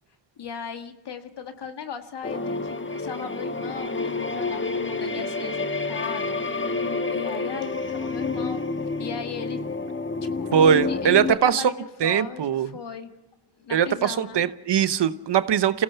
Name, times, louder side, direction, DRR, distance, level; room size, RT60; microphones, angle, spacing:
voice 1, 0.4-8.7 9.0-9.6 10.2-10.5 10.9-13.1 13.6-14.4, left 6 dB, 70° left, 6 dB, 1.9 m, -37 dB
sound 1, 2.2-11.3, left 3 dB, 25° left, 1.5 m, -29 dB
voice 2, 10.5-11.6 12.0-12.7 13.7-15.8, right 8 dB, 70° right, 13 dB, 1.0 m, -21 dB
27.5 x 17.0 x 5.8 m, 0.90 s
cardioid pair, 55°, 43 cm